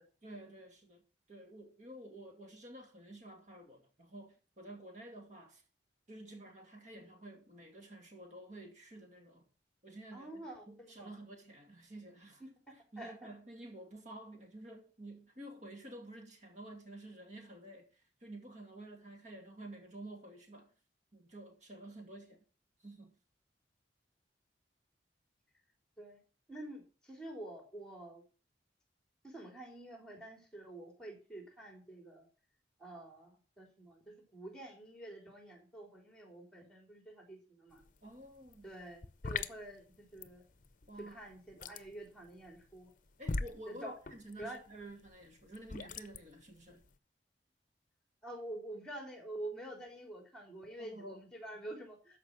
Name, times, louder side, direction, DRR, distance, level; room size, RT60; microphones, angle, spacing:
voice 1, 0.2-1.0 1.3-5.6 6.1-9.5 9.8-12.4 12.7-20.7 21.1-22.4 22.8-23.2 38.0-38.7 40.9-41.2 43.2-46.8 50.8-51.3, right 1 dB, 45° right, 2.5 m, -51 dB
voice 2, 10.1-11.1 13.0-13.1 26.0-26.2 26.5-28.2 29.2-32.2 32.8-37.8 38.6-39.9 40.1-40.4 41.0-42.9 43.7-43.9 44.4-44.6 45.7-45.8 48.2-52.2, right 1 dB, 5° left, 3.7 m, -48 dB
sound 1, 37.7-38.0 38.2-46.9, left 3 dB, 50° left, 0.7 m, -42 dB
13.5 x 5.4 x 7.4 m
head